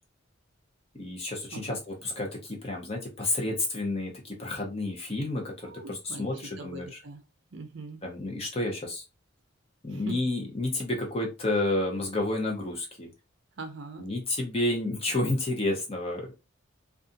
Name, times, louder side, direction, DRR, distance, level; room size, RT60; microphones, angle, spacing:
voice 1, 1.0-6.9 8.0-9.0 9.8-13.1 14.0-16.3, left 2 dB, 30° left, 0.7 m, -30 dB
voice 2, 1.5-1.8 5.6-7.2 7.5-8.0 9.9-10.2 13.6-14.1, right 2 dB, 60° right, 0.5 m, -41 dB
2.6 x 2.4 x 2.5 m
head